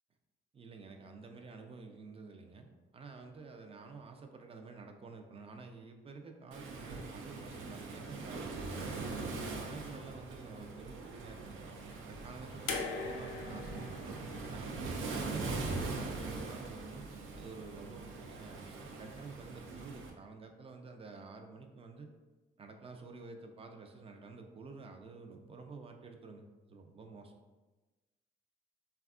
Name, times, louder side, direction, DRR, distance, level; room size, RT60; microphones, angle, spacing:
voice 1, 0.5-2.7 2.9-8.9 9.3-11.8 12.1-12.7 13.0-14.2 14.4-17.0 17.3-22.1 22.6-27.3, right 4 dB, 30° right, 4 dB, 0.4 m, -50 dB
Waves surf, 6.5-20.1, right 3 dB, 85° right, 0.5 m, -42 dB
sound 1, 12.7-15.8 17.0-17.1, left 4 dB, 70° left, 0.5 m, -42 dB
3.4 x 2.3 x 2.3 m, 1.2 s
cardioid pair, 90°, 20 cm